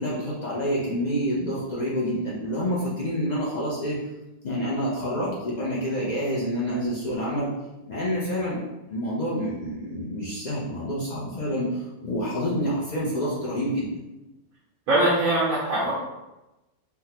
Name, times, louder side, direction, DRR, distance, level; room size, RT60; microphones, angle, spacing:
voice 1, 0.0-4.0 4.4-7.5 7.9-8.6 8.9-13.9, equal, 65° left, -6 dB, 0.4 m, -28 dB
voice 2, 14.9-15.9, right 1 dB, 75° right, -7 dB, 1.2 m, -22 dB
3.6 x 2.2 x 2.8 m, 1.0 s
omnidirectional pair, 1.5 m